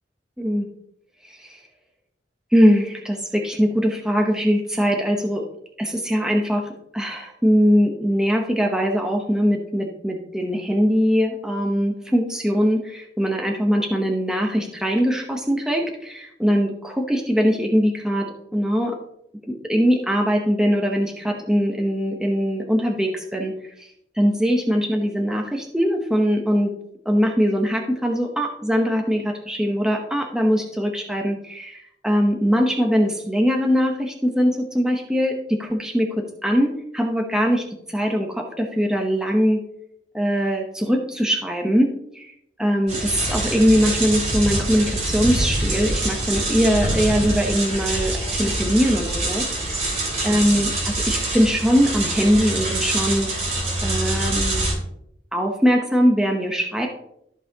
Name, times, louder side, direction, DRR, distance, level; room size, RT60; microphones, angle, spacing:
voice 1, 1.2-1.6 2.5-5.4 5.8-19.0 19.5-23.9 24.1-26.7 27.0-39.6 40.1-42.3 42.6-49.5 50.2-53.3 53.8-54.7 55.3-56.9, equal, 5° right, 1 dB, 0.8 m, -21 dB
sound 1, 42.9-54.7, right 1 dB, 40° right, 3.1 m, -25 dB
13.5 x 5.6 x 2.8 m, 0.75 s
head